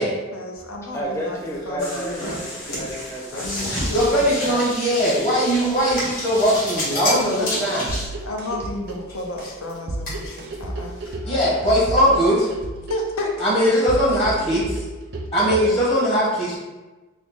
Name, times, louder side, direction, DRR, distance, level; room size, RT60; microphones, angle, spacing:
voice 1, 0.0-1.4 1.7-2.3 3.3-4.6 7.0-7.6 8.2-11.0 12.9-14.0, left 2 dB, 80° left, 1 dB, 0.6 m, -31 dB
sound 1, 0.5-11.1, left 1 dB, 45° left, 1.5 m, -35 dB
voice 2, 0.8-3.8 6.5-6.6 11.2-11.9 12.2-12.4 13.9-14.6, equal, 15° left, -3 dB, 0.5 m, -33 dB
sound 2, 1.8-8.1, left 1 dB, 65° left, 1.2 m, -31 dB
voice 3, 3.9-7.9 11.2-12.4 13.4-14.7 15.3-16.6, equal, 30° left, -6 dB, 1.0 m, -20 dB
sound 3, 7.9-15.9, right 2 dB, 50° right, 0.4 m, -32 dB
3.7 x 2.0 x 3.5 m, 1.2 s
head